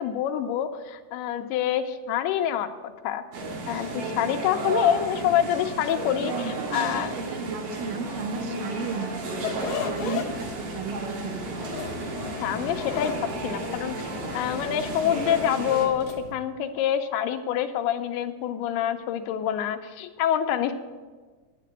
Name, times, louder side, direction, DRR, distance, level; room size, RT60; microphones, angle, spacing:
voice 1, 0.0-3.2 3.7-7.1 12.4-13.1 13.4-20.7, left 10 dB, 80° left, 7 dB, 2.5 m, -26 dB
sound 1, 3.3-15.9, right 2 dB, 60° right, 3.2 m, -33 dB
voice 2, 6.2-9.1 9.4-11.6, right 5 dB, 80° right, 4 dB, 1.9 m, -34 dB
sound 2, 9.4-16.3, left 7 dB, 65° left, 2.6 m, -36 dB
9.2 x 7.5 x 8.8 m, 1.4 s
omnidirectional pair, 4.8 m